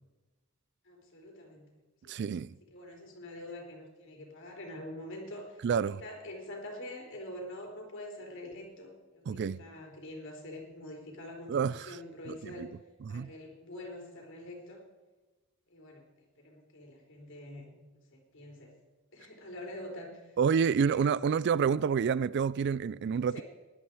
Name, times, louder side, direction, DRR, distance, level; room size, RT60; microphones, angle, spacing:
voice 1, 0.8-1.7 2.0-2.3 2.7-12.7 13.1-14.8 15.7-16.0 16.4-17.7 18.1-18.7 19.1-20.4 20.7-21.1 21.5-21.7 23.3-23.4, left 1 dB, 65° left, 3.8 m, -45 dB
voice 2, 2.1-2.5 5.6-6.0 9.3-9.6 11.5-12.0 12.3-12.7 13.0-13.3 20.4-23.4, right 6 dB, 55° right, 0.3 m, -28 dB
18.5 x 11.5 x 4.8 m
head